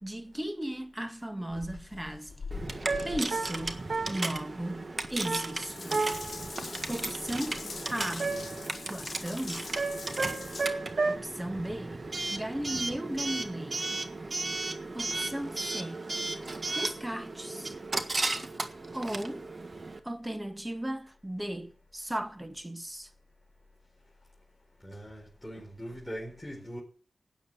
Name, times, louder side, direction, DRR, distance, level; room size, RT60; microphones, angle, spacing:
voice 1, 0.0-2.3 3.0-6.1 6.9-7.6 7.9-8.4 8.9-9.7 11.1-13.8 14.9-16.1 16.7-17.8 18.9-19.5 20.0-23.1, right 1 dB, 15° right, 1.7 m, -36 dB
Water tap faucet / Bathtub (filling or washing) / Drip, 1.5-10.7, left 4 dB, 70° left, 1.4 m, -44 dB
Coin (dropping) / Alarm, 2.5-20.0, right 2 dB, 50° right, 1.5 m, -36 dB
sound 1, 2.8-4.4 5.2-6.5 8.2-8.7 9.8-11.2, right 3 dB, 70° right, 1.7 m, -32 dB
voice 2, 24.8-26.8, equal, 10° left, 4.4 m, -41 dB
13.0 x 9.2 x 7.5 m
cardioid pair, 50°, 0 cm